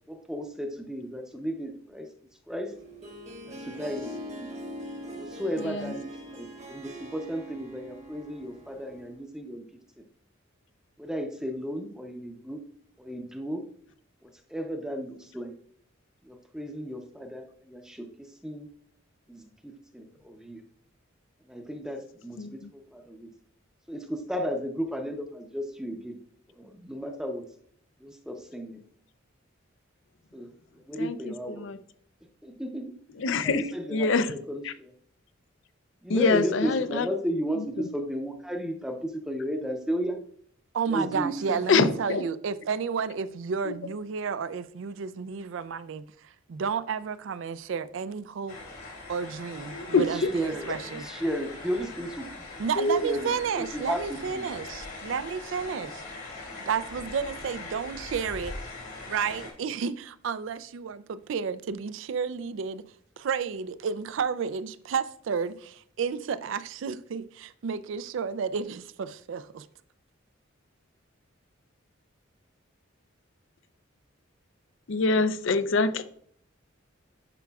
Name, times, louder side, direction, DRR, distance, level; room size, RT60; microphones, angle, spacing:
voice 1, 0.1-2.1 2.5-2.7 3.5-4.5 5.1-9.7 10.0-10.1 11.0-12.6 13.0-13.6 14.2-15.5 16.2-18.7 19.3-20.6 21.5-23.3 23.9-26.2 26.6-27.4 28.0-28.8 30.3-30.5 30.7-31.7 32.4-32.9 33.4-34.9 36.0-40.2 40.9-41.6 49.9-52.3 53.0-53.3 53.6-54.5, equal, 5° right, 0.6 m, -34 dB
Harp, 2.7-9.2, equal, 35° right, 1.1 m, -42 dB
voice 2, 5.6-5.9 22.4-22.7 31.0-31.8 33.2-33.6 33.9-34.3 34.6-34.7 36.1-37.1 37.6-37.7 41.7-42.2 43.7-43.8 49.7-50.3 52.8-53.0 74.9-76.0, left 3 dB, 65° left, 0.5 m, -25 dB
voice 3, 40.7-51.2 52.6-56.0 56.7-58.6 59.1-62.8 63.2-69.7, right 6 dB, 65° right, 0.4 m, -32 dB
sound 1, 48.5-59.5, left 2 dB, 90° left, 2.4 m, -41 dB
10.5 x 4.7 x 2.3 m
head